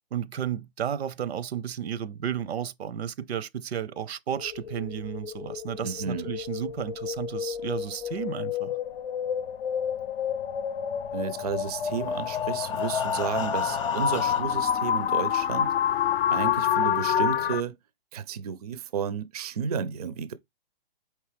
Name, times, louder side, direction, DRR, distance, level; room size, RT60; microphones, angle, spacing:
voice 1, 0.1-8.8, right 9 dB, 85° right, 0.6 m, -33 dB
sound 1, 4.4-17.6, left 9 dB, 70° left, 0.6 m, -28 dB
voice 2, 5.8-6.3 11.1-15.7 16.3-17.8 18.1-20.3, right 7 dB, 40° right, 0.4 m, -32 dB
Breathing, 11.8-14.8 15.5-15.6 16.0-16.1 16.5-16.6, left 6 dB, 30° left, 0.6 m, -37 dB
4.6 x 3.1 x 3.3 m
hypercardioid pair, 165°, 31 cm